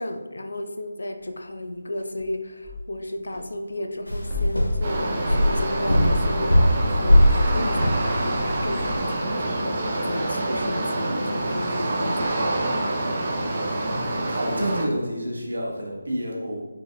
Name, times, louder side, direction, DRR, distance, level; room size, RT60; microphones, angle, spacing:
voice 1, 0.0-12.7, left 1 dB, 65° left, 6 dB, 0.5 m, -33 dB
sound 1, 1.2-15.8, left 2 dB, 10° right, 1.0 m, -42 dB
sound 2, 4.1-9.0, equal, 80° left, 0.9 m, -21 dB
sound 3, 4.8-14.8, right 1 dB, 30° right, 0.6 m, -27 dB
voice 2, 13.8-16.6, equal, 65° right, -1 dB, 1.2 m, -29 dB
4.8 x 4.6 x 2.3 m, 1.3 s
figure-of-eight pair, 155°, 0 cm